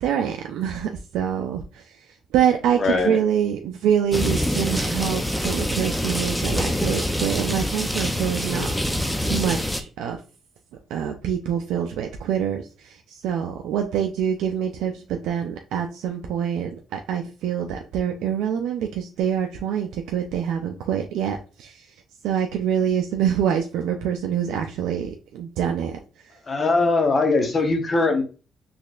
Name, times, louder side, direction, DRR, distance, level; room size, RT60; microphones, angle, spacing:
voice 1, 0.0-1.9 2.3-9.0 9.3-10.2 10.9-21.8 22.2-26.0, right 9 dB, 90° right, 4 dB, 0.4 m, -25 dB
voice 2, 2.8-3.2 26.5-28.2, left 3 dB, 40° left, 5 dB, 0.9 m, -21 dB
sound 1, 4.1-9.8, equal, 5° left, 0.5 m, -25 dB
4.1 x 3.1 x 2.4 m, 0.34 s
cardioid pair, 90°, 0 cm